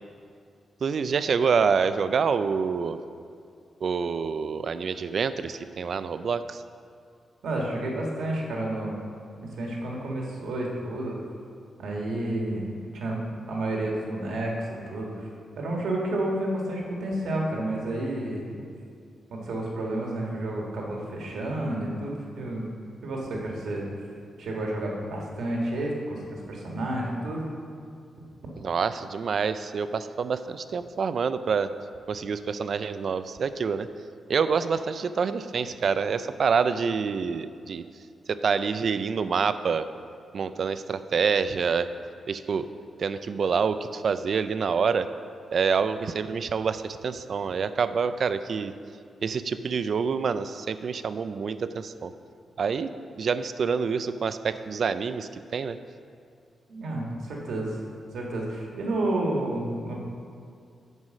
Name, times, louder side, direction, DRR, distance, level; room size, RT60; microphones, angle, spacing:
voice 1, 0.8-3.0 3.8-6.6 28.6-31.7 32.1-33.9 34.3-37.8 38.3-39.9 40.3-41.9 42.3-42.7 43.0-45.1 45.5-48.7 49.2-52.1 52.6-52.9 53.2-55.8, right 6 dB, 50° right, 12 dB, 0.4 m, -27 dB
voice 2, 7.4-8.9 9.4-11.2 11.8-15.3 15.5-18.6 19.3-22.7 23.0-23.9 24.4-27.4 56.7-57.8 58.1-60.0, right 1 dB, 75° right, -2 dB, 1.6 m, -30 dB
9.5 x 4.8 x 6.4 m, 2.4 s
wide cardioid pair, 140°, 0 cm